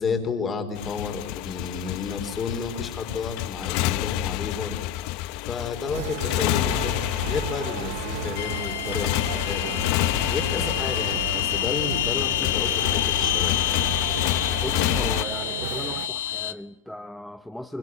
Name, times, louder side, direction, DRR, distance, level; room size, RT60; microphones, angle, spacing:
voice 1, 0.0-4.9 5.4-9.8 10.3-13.5, left 5 dB, 20° left, 4.3 m, -31 dB
Motorcycle, 0.8-15.2, left 17 dB, 55° left, 0.8 m, -29 dB
sound 1, 5.9-16.1, right 15 dB, 70° right, 0.9 m, -35 dB
sound 2, 8.4-16.5, left 15 dB, 80° left, 1.2 m, -28 dB
voice 2, 14.6-17.8, left 1 dB, 5° left, 0.8 m, -37 dB
25.0 x 21.0 x 9.5 m
supercardioid pair, 135°, 0 cm